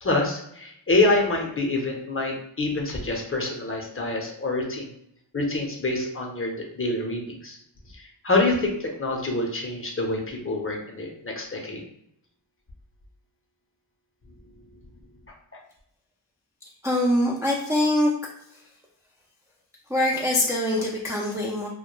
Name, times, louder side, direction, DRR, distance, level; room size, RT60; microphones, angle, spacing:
voice 1, 0.0-4.9 5.3-7.6 7.9-11.8, left 2 dB, 30° left, 0 dB, 0.6 m, -26 dB
voice 2, 16.8-18.1 18.5-18.6 19.9-21.7, left 1 dB, 5° right, -3 dB, 0.3 m, -23 dB
2.1 x 2.1 x 3.0 m, 0.74 s
cardioid pair, 45°, 47 cm